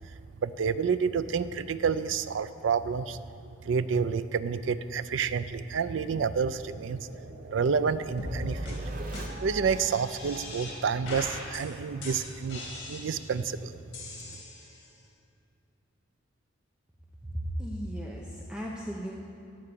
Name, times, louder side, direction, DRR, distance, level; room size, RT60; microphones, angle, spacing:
voice 1, 0.4-3.2 3.7-7.0 7.5-8.9 9.4-13.8, right 6 dB, 70° right, 14 dB, 0.4 m, -29 dB
sound 1, 5.5-12.1, right 2 dB, 40° right, 0.7 m, -43 dB
sound 2, 8.2-8.4 8.7-8.8 9.1-9.2 9.7-10.8 11.0-11.6 12.0-13.4 13.9-14.9, left 2 dB, 55° left, 3.0 m, -41 dB
voice 2, 17.2-19.2, equal, 5° right, -3 dB, 0.7 m, -35 dB
14.0 x 4.6 x 8.5 m, 2.7 s
head